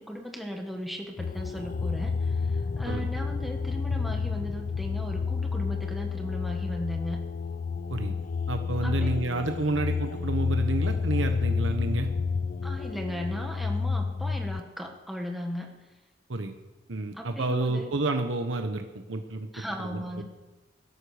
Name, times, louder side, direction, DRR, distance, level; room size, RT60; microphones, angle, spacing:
voice 1, 0.0-2.3 2.8-7.2 8.8-9.2 12.6-15.8 17.1-17.9 19.5-20.2, equal, ahead, 1 dB, 1.7 m, -37 dB
sound 1, 1.2-14.6, left 5 dB, 45° left, 0.4 m, -30 dB
voice 2, 8.5-12.1 16.3-16.5 16.9-19.5 19.8-20.2, right 2 dB, 80° right, 6 dB, 1.1 m, -30 dB
17.0 x 13.0 x 5.1 m, 1.1 s
head